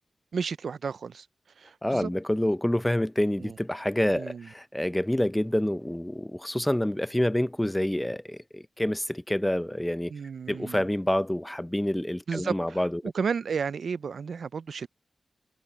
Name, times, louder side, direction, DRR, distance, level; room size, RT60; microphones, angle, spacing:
voice 1, 0.3-1.3 1.6-2.1 3.4-3.5 4.1-4.5 10.1-10.8 12.3-14.9, right 6 dB, 75° right, 0.4 m, -33 dB
voice 2, 1.8-10.1 10.5-13.0, left 1 dB, 10° left, 0.6 m, -27 dB
wide cardioid pair, 85°, 0 cm